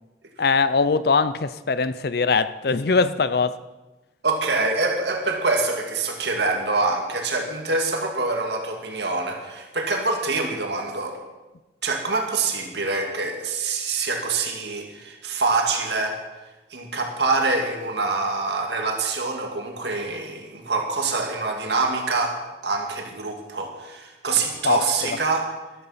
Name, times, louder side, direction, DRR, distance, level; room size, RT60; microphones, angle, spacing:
voice 1, 0.4-3.6 24.6-25.2, left 4 dB, 55° left, 0.6 m, -22 dB
voice 2, 4.2-11.2 11.8-16.2 16.7-22.4 22.6-25.5, right 3 dB, 65° right, 2.2 m, -25 dB
13.5 x 12.5 x 5.7 m
head